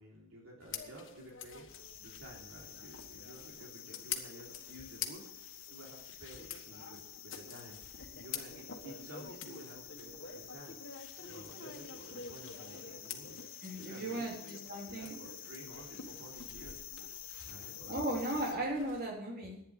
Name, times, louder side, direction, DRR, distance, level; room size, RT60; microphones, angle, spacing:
voice 1, 0.0-1.7 2.0-5.3 5.7-7.8 8.1-10.8 11.3-13.4 13.8-14.3 14.9-16.9 17.4-18.0 18.3-18.4, right 1 dB, 75° right, -3 dB, 3.5 m, -52 dB
sound 1, 0.6-19.0, left 7 dB, 60° left, 1.6 m, -48 dB
sound 2, 1.7-18.5, left 10 dB, 45° left, 1.8 m, -50 dB
voice 2, 13.6-15.2 17.9-19.6, right 1 dB, 45° right, 0 dB, 3.3 m, -36 dB
11.0 x 10.0 x 6.6 m, 0.80 s
head